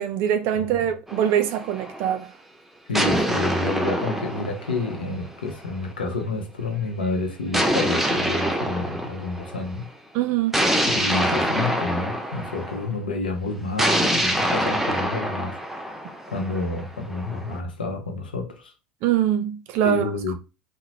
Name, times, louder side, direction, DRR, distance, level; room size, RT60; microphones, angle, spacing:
voice 1, 0.0-2.3 10.1-10.6 19.0-20.1, right 10 dB, 55° right, 0.4 m, -23 dB
sound 1, 1.1-2.1 2.9-5.5 7.5-9.7 10.5-12.8 13.8-17.6, equal, 5° right, 0.5 m, -25 dB
voice 2, 2.9-9.9 11.0-15.6 16.3-18.7 19.8-20.3, left 3 dB, 80° left, 0.6 m, -29 dB
2.9 x 2.0 x 2.7 m
figure-of-eight pair, 75°, 5 cm